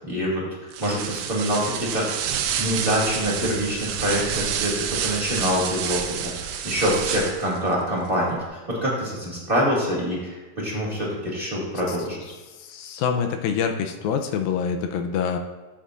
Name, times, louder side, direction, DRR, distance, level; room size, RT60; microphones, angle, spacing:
voice 1, 0.1-0.4 0.8-2.2 2.6-6.3 6.6-10.2 10.6-12.2, equal, 20° right, -6 dB, 1.7 m, -25 dB
sound 1, 0.7-7.6, right 8 dB, 80° right, 2.2 m, -29 dB
voice 2, 12.6-15.4, left 7 dB, 85° left, 5 dB, 2.4 m, -26 dB
13.5 x 8.1 x 2.5 m, 1.3 s
omnidirectional pair, 4.2 m